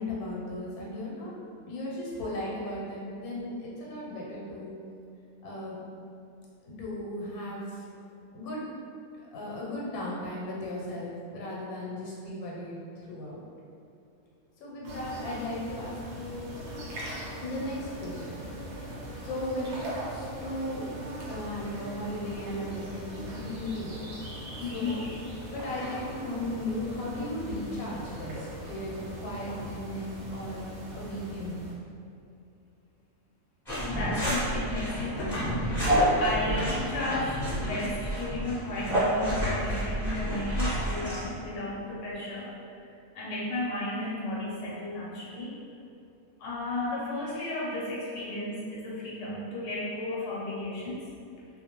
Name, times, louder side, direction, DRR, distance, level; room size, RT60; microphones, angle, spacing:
voice 1, 0.0-1.3 1.7-4.7 5.4-5.8 6.6-7.8 8.3-8.7 9.3-13.4 14.6-16.5 17.4-18.4 19.2-20.8 21.2-24.1 24.6-25.0 25.5-31.6, left 1 dB, 90° left, -4 dB, 1.1 m, -36 dB
sound 1, 14.8-31.7, equal, 65° right, 0.8 m, -40 dB
voice 2, 24.6-25.0 33.9-42.5 42.8-42.9 43.1-45.5 46.4-51.0, left 2 dB, 60° left, -6 dB, 0.8 m, -34 dB
sound 2, 33.7-41.2, equal, ahead, 1.0 m, -29 dB
2.3 x 2.1 x 2.9 m, 2.5 s
omnidirectional pair, 1.5 m